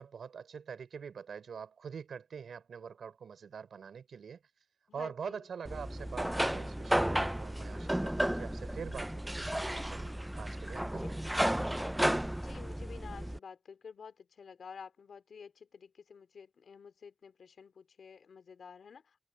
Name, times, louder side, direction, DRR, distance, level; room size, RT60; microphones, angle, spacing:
voice 1, 0.0-4.4 4.9-11.3 11.8-11.9, right 6 dB, 85° right, 4.7 m, -45 dB
voice 2, 4.9-5.5 11.0-11.1 12.4-19.2, left 6 dB, 80° left, 2.8 m, -51 dB
sound 1, 5.6-13.4, right 1 dB, 10° right, 0.5 m, -33 dB
open air
cardioid pair, 65°, 0 cm